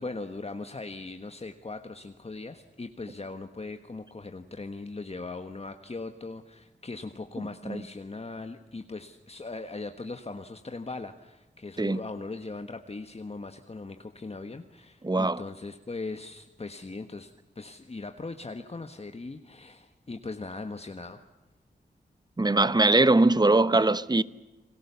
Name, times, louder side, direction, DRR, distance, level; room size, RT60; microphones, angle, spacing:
voice 1, 0.0-21.2, left 3 dB, 35° left, 1.4 m, -39 dB
voice 2, 15.0-15.4 22.4-24.2, right 2 dB, 25° right, 0.9 m, -21 dB
30.0 x 21.5 x 7.0 m
wide cardioid pair, 75°, 18 cm